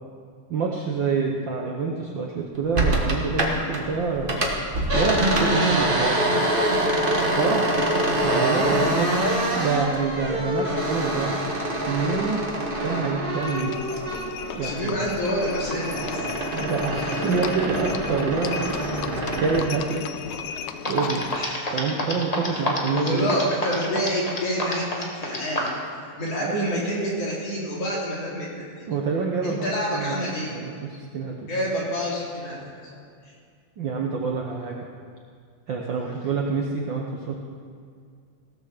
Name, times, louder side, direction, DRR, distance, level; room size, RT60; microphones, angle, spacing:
voice 1, 0.5-4.4 4.9-6.3 7.2-7.8 8.2-11.4 11.9-12.5 12.8-13.8 14.5-15.0 16.5-20.0 20.9-21.3 21.7-23.3 26.4-26.6 28.9-30.1 30.5-31.5 33.8-34.8 35.7-37.4, right 4 dB, 90° right, 0 dB, 1.0 m, -27 dB
sound 1, 2.7-3.8 4.1-14.5 14.8-19.7, right 1 dB, 70° right, 0.5 m, -25 dB
Livestock farm animals working animals, 13.4-21.5, left 9 dB, 90° left, 2.0 m, -36 dB
voice 2, 14.5-16.4 21.3-21.7 22.5-22.6 22.9-25.7 26.0-28.5 29.4-30.5 31.5-32.6 36.0-36.3, equal, 55° left, -6 dB, 4.0 m, -28 dB
sound 2, 20.5-20.6 20.8-25.8, left 1 dB, 35° left, 0.6 m, -27 dB
17.0 x 6.9 x 6.6 m, 2.2 s
omnidirectional pair, 3.4 m